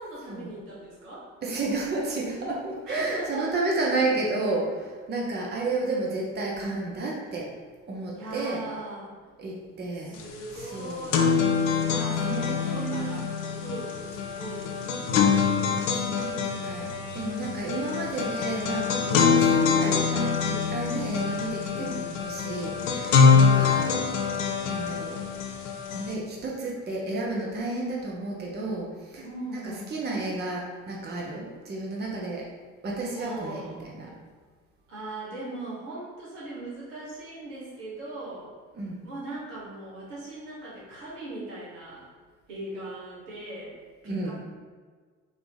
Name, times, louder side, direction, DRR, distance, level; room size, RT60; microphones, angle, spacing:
voice 1, 0.0-1.3 2.9-3.5 8.1-9.1 9.9-11.4 11.8-15.6 19.1-19.6 21.7-22.0 23.1-23.8 29.2-29.9 33.1-33.9 34.9-38.5 39.0-42.1 42.5-43.7 44.0-44.3, right 1 dB, 75° right, -7 dB, 1.4 m, -39 dB
voice 2, 1.4-7.5 7.9-8.6 9.4-10.2 10.6-11.1 12.2-13.2 15.6-21.9 22.2-23.9 24.6-25.2 25.9-29.2 29.5-29.6 29.9-32.4 32.8-34.1 38.8-39.0 44.0-44.3, right 2 dB, 25° right, -3 dB, 0.8 m, -31 dB
sound 1, 10.2-10.3 10.6-26.1, left 5 dB, 70° left, 0.6 m, -25 dB
3.9 x 2.9 x 3.8 m, 1.5 s
figure-of-eight pair, 50°, 39 cm